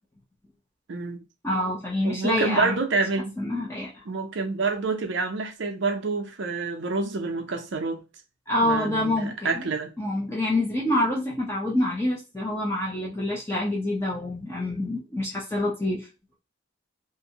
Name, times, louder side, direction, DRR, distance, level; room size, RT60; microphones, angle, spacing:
voice 1, 0.9-1.2 2.0-3.3 4.1-8.0 8.6-9.9, right 3 dB, 65° right, 0.5 m, -28 dB
voice 2, 1.4-2.8 3.4-4.0 8.5-9.6 10.0-16.1, left 1 dB, 15° left, 0.6 m, -26 dB
2.5 x 2.1 x 2.7 m
head